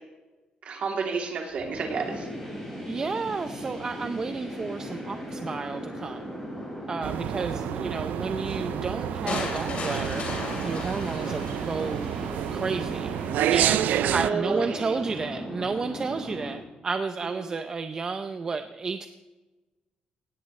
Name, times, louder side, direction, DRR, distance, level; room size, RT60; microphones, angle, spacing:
voice 1, 0.6-2.3 14.0-15.0 17.2-17.5, right 5 dB, 50° right, 1 dB, 3.0 m, -30 dB
sound 1, 1.5-16.5, equal, 5° left, 5.6 m, -37 dB
voice 2, 2.8-6.4 6.9-10.2 10.6-12.1 12.5-13.1 13.5-19.1, right 4 dB, 25° right, 8 dB, 0.5 m, -32 dB
sound 2, 7.0-14.3, right 12 dB, 85° right, 0.4 m, -29 dB
sound 3, 9.3-12.3, left 3 dB, 45° left, 4.0 m, -35 dB
18.0 x 17.0 x 3.2 m, 1.2 s
cardioid pair, 175°, 3 cm